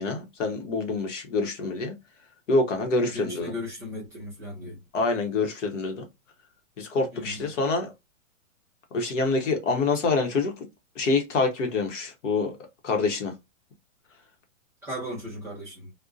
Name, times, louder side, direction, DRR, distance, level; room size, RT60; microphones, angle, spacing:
voice 1, 0.0-1.9 2.5-3.5 4.9-6.0 6.8-7.9 8.9-10.7 11.0-12.5 12.8-13.3, left 3 dB, 60° left, 0.9 m, -26 dB
voice 2, 3.0-4.8 7.1-7.4 14.8-15.9, left 1 dB, 5° right, 0.9 m, -36 dB
2.5 x 2.1 x 2.4 m
hypercardioid pair, 165°, 41 cm